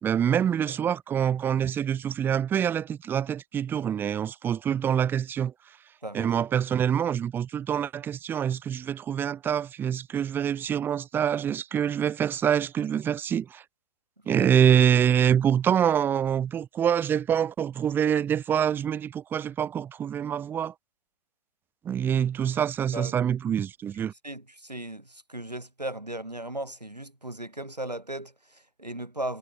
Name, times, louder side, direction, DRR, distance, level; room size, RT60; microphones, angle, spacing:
voice 1, 0.0-5.5 6.1-13.6 14.3-20.7 21.8-24.1, right 9 dB, 10° right, 2.5 m, -25 dB
voice 2, 6.0-6.4 14.3-14.5 22.9-23.1 24.2-29.4, right 1 dB, 85° right, 6.1 m, -36 dB
figure-of-eight pair, 135°, 20 cm